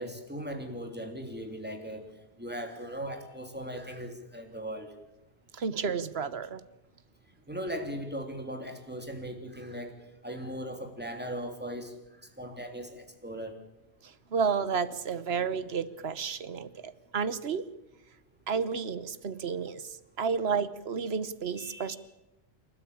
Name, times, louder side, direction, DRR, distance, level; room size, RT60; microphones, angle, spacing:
voice 1, 0.0-2.1 2.4-4.9 7.5-10.0 10.2-13.6 21.6-22.0, equal, 10° right, 4 dB, 3.2 m, -38 dB
voice 2, 5.5-6.6 14.0-17.7 18.5-22.0, right 6 dB, 65° right, 15 dB, 1.3 m, -31 dB
28.0 x 13.0 x 8.7 m, 0.95 s
omnidirectional pair, 1.2 m